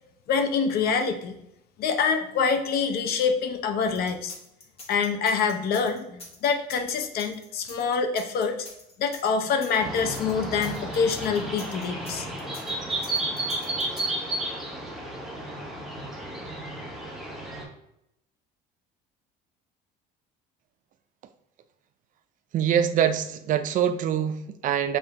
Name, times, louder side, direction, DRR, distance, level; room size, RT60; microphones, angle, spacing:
voice 1, 0.3-1.4 1.8-4.3 4.9-8.7 9.0-12.3, left 5 dB, 55° left, 6 dB, 0.7 m, -26 dB
sound 1, 3.9-14.0, left 2 dB, 30° left, 1.1 m, -45 dB
sound 2, 9.8-17.6, right 2 dB, ahead, 1.3 m, -32 dB
voice 2, 22.5-25.0, right 9 dB, 45° right, 11 dB, 0.4 m, -24 dB
5.6 x 2.6 x 3.3 m, 0.81 s
cardioid pair, 115°, 19 cm